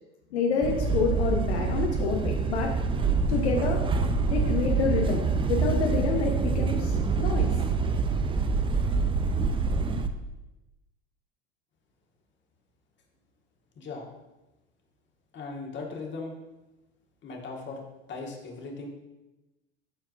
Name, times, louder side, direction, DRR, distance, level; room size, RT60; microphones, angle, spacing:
voice 1, 0.3-2.7 3.3-3.8 4.3-7.5, left 5 dB, 75° left, 1 dB, 1.0 m, -28 dB
sound 1, 0.6-10.1, right 4 dB, 15° right, 0.5 m, -26 dB
voice 2, 13.8-14.1 15.3-16.3 17.2-17.8 18.1-18.9, left 3 dB, 35° left, 0 dB, 1.8 m, -38 dB
13.0 x 4.4 x 2.5 m, 1.0 s
hypercardioid pair, 80°, 33 cm